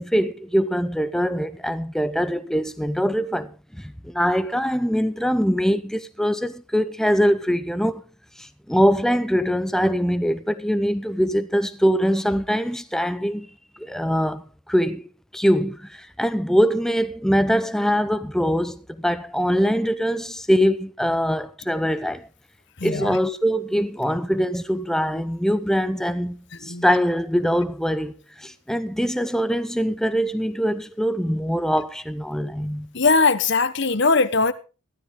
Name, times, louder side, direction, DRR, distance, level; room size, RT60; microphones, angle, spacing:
voice 1, 0.0-8.0 8.4-13.5 13.8-22.3 22.8-32.9, equal, ahead, 0.7 m, -23 dB
voice 2, 22.8-23.2 25.1-25.2 26.6-26.8 32.9-34.5, left 4 dB, 50° left, 1.1 m, -20 dB
15.5 x 13.0 x 3.7 m
head